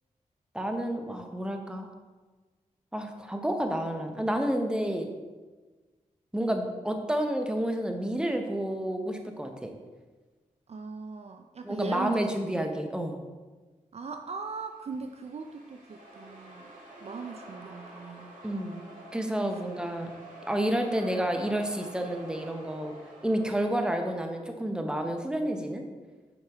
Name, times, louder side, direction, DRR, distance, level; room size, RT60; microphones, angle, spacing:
voice 1, 0.5-1.9 2.9-5.1 6.3-9.7 11.6-13.2 18.4-18.8 19.1-20.1 20.5-22.9 23.2-25.8, right 1 dB, 5° right, 4 dB, 0.8 m, -30 dB
voice 2, 10.7-12.2 12.5-12.6 13.9-16.7 17.0-18.3, right 4 dB, 50° right, 6 dB, 0.4 m, -39 dB
sound 1, 14.6-24.5, right 1 dB, 85° right, 1.4 m, -49 dB
5.6 x 5.2 x 3.5 m, 1.3 s
cardioid pair, 50°, 14 cm